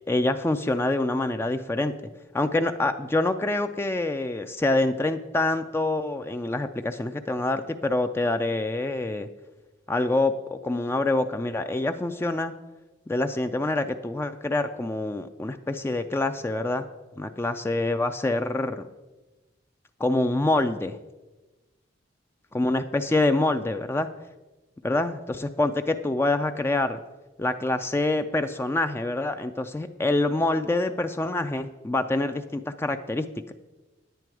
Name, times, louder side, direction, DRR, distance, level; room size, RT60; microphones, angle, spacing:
voice 1, 0.1-1.9 2.3-9.3 9.9-12.5 13.1-16.9 17.2-18.8 20.0-21.0 22.5-24.1 24.8-27.0 27.4-33.5, left 2 dB, 15° left, 8 dB, 0.3 m, -26 dB
9.9 x 9.1 x 4.7 m, 1.1 s
head